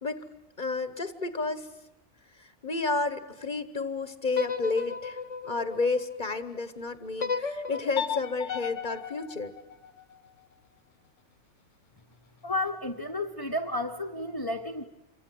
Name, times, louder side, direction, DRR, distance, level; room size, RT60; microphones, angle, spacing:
voice 1, 0.6-1.7 2.4-5.2 5.4-9.5, left 3 dB, 40° left, 11 dB, 1.4 m, -31 dB
sound 1, 4.3-6.5 7.2-10.3, left 6 dB, 80° left, 1.7 m, -35 dB
voice 2, 12.4-14.9, left 1 dB, 20° left, 2 dB, 1.2 m, -32 dB
28.5 x 25.5 x 7.7 m, 0.96 s
omnidirectional pair, 1.2 m